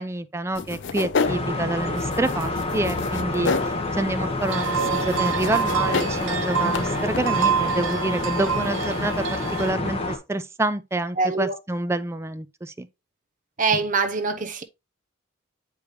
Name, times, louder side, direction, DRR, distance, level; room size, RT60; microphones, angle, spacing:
voice 1, 0.0-12.9, right 2 dB, 15° right, 0.4 m, -28 dB
sound 1, 0.5-8.9, left 5 dB, 60° left, 0.5 m, -32 dB
sound 2, 1.2-10.2, left 2 dB, 30° left, 1.3 m, -28 dB
sound 3, 4.5-9.7, right 8 dB, 75° right, 0.6 m, -27 dB
voice 2, 11.2-11.6 13.6-14.6, right 4 dB, 40° right, 0.7 m, -23 dB
8.2 x 4.9 x 3.0 m
head